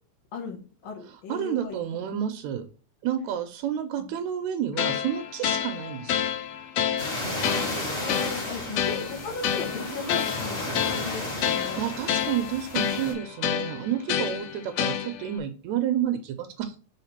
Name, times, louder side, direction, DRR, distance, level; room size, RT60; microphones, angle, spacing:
voice 1, 0.3-1.8 4.0-4.1 7.3-11.8 14.1-14.4, left 5 dB, 50° left, 0 dB, 2.0 m, -37 dB
voice 2, 1.1-2.7 3.0-6.3 8.7-8.8 11.8-16.7, right 10 dB, 85° right, 7 dB, 2.0 m, -30 dB
sound 1, 4.8-15.4, left 9 dB, 75° left, 1.7 m, -29 dB
sound 2, 7.0-13.1, left 1 dB, 25° left, 2.2 m, -33 dB
5.8 x 3.8 x 4.3 m, 0.37 s
omnidirectional pair, 3.3 m